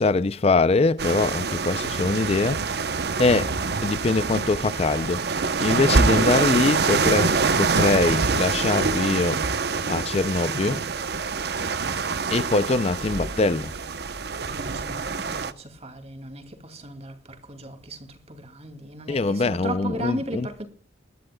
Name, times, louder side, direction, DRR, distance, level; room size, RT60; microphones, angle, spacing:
voice 1, 0.0-2.6 3.2-3.5 3.8-5.2 5.6-9.4 9.9-10.8 12.3-13.7 19.1-20.6, left 3 dB, 35° left, 0.4 m, -23 dB
sound 1, 1.0-15.5, right 4 dB, 60° right, 0.8 m, -25 dB
voice 2, 14.5-20.7, right 1 dB, 35° right, 2.4 m, -36 dB
22.0 x 11.5 x 2.3 m
head